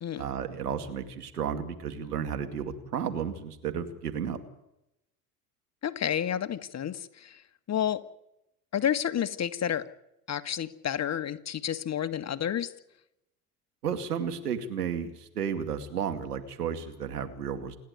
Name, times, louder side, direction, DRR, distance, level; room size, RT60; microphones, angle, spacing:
voice 1, 0.1-4.4 13.8-17.8, right 7 dB, 90° right, 7 dB, 2.4 m, -33 dB
voice 2, 5.8-7.4 7.7-8.0 8.7-9.9 10.3-12.7, left 9 dB, 35° left, 11 dB, 1.7 m, -30 dB
28.0 x 11.0 x 9.4 m, 0.84 s
hypercardioid pair, 70°, 45 cm